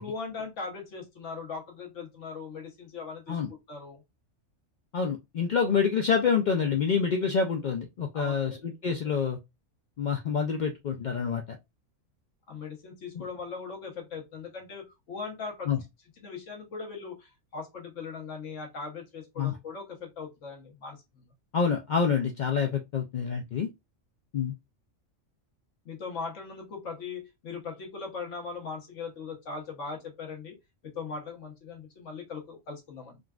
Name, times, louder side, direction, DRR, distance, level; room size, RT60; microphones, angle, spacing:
voice 1, 0.0-3.4 3.7-4.0 8.1-9.2 12.5-15.7 16.2-21.2 25.8-30.5 30.8-33.2, left 4 dB, 70° left, 1.3 m, -39 dB
voice 2, 4.9-9.4 10.0-11.6 15.7-15.8 19.4-19.5 21.5-23.7 24.3-24.5, left 6 dB, 85° left, 0.4 m, -27 dB
3.8 x 2.3 x 2.3 m
omnidirectional pair, 1.3 m